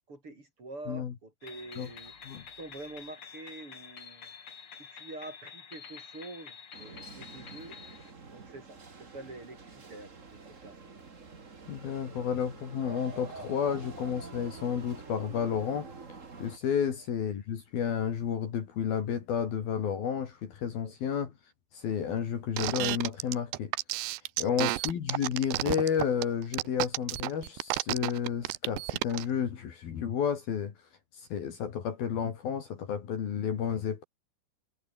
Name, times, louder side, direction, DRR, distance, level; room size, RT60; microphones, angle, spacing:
voice 1, 0.1-2.1 2.6-4.3 4.9-7.8 8.3-10.7 20.8-21.0 24.4-24.6, right 2 dB, 30° right, 6.3 m, -46 dB
sound 1, 1.4-8.1, left 6 dB, 40° left, 2.2 m, -48 dB
sound 2, 6.7-16.6, right 4 dB, 45° right, 1.0 m, -47 dB
voice 2, 11.7-15.9 16.4-21.3 21.7-24.0 24.4-30.7 31.1-34.0, left 8 dB, 55° left, 4.1 m, -31 dB
sound 3, 22.6-29.2, right 19 dB, 85° right, 2.5 m, -31 dB
omnidirectional pair, 5.5 m